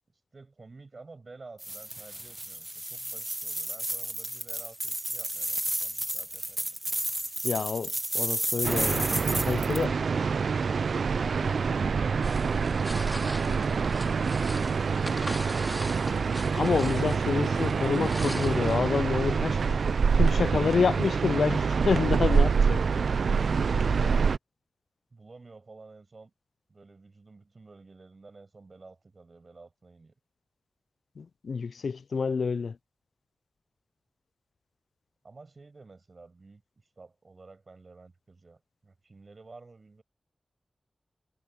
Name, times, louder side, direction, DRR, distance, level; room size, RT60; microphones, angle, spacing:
voice 1, 0.3-6.8 25.1-26.3 26.7-30.1 35.2-36.6 37.0-40.0, right 3 dB, 50° right, 7.7 m, -51 dB
sound 1, 1.6-9.8, right 1 dB, 15° right, 1.1 m, -32 dB
voice 2, 7.4-9.1 9.4-9.9 16.5-19.6 20.1-22.8 31.2-32.8, left 5 dB, 80° left, 0.3 m, -28 dB
sound 2, 8.6-24.4, right 5 dB, 80° right, 0.3 m, -26 dB
sound 3, 12.2-18.8, left 1 dB, 10° left, 3.6 m, -41 dB
wide cardioid pair, 70°, 0 cm